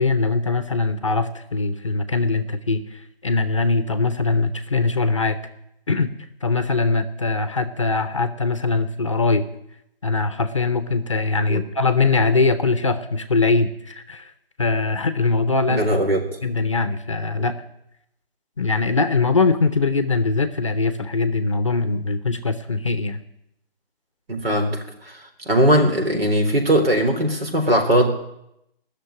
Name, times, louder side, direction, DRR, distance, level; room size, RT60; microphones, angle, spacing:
voice 1, 0.0-5.4 5.9-6.1 6.4-9.4 10.0-14.3 14.6-15.9 16.4-17.5 18.6-23.2, left 3 dB, 30° left, 11 dB, 0.7 m, -21 dB
voice 2, 15.7-16.4 24.3-28.1, right 1 dB, 75° right, 4 dB, 3.9 m, -20 dB
16.5 x 6.7 x 9.8 m, 0.82 s
hypercardioid pair, 170°, 30 cm